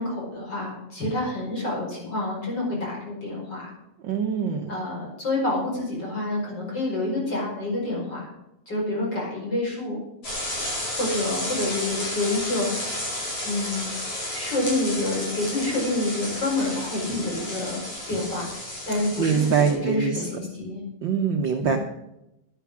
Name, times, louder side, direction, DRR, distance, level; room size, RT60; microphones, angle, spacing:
voice 1, 0.0-3.7 4.7-8.3 8.7-10.0 10.9-12.7 13.4-13.9 14.3-17.8 18.1-18.6 18.9-20.8 21.6-21.8, left 2 dB, 35° left, -3 dB, 5.6 m, -28 dB
voice 2, 4.0-4.7 19.2-20.2 21.0-21.8, right 6 dB, 80° right, 4 dB, 1.0 m, -23 dB
sound 1, 10.2-19.7, left 1 dB, 55° left, 6.2 m, -32 dB
11.5 x 9.3 x 6.1 m, 0.85 s
omnidirectional pair, 3.4 m